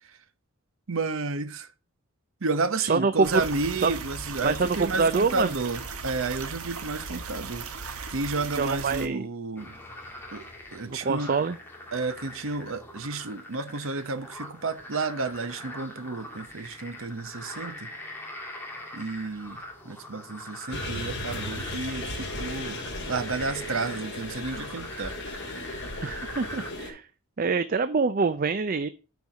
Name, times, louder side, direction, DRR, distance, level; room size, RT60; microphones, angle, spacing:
voice 1, 0.9-1.7 2.4-9.8 10.3-10.4 10.7-11.3 11.9-17.9 18.9-25.1 25.5-25.6 26.0-26.2, right 3 dB, 65° right, 0.8 m, -31 dB
voice 2, 2.8-3.3 3.8-3.9 4.4-5.5 8.6-9.3 10.9-11.6 26.0-27.0 27.4-28.9, right 4 dB, 40° right, 0.4 m, -25 dB
sound 1, 3.2-9.1, right 4 dB, 80° right, 1.3 m, -37 dB
sound 2, 9.6-26.7, left 1 dB, 10° left, 1.9 m, -42 dB
sound 3, 20.7-26.9, left 1 dB, 50° left, 2.9 m, -36 dB
9.3 x 4.5 x 6.5 m
head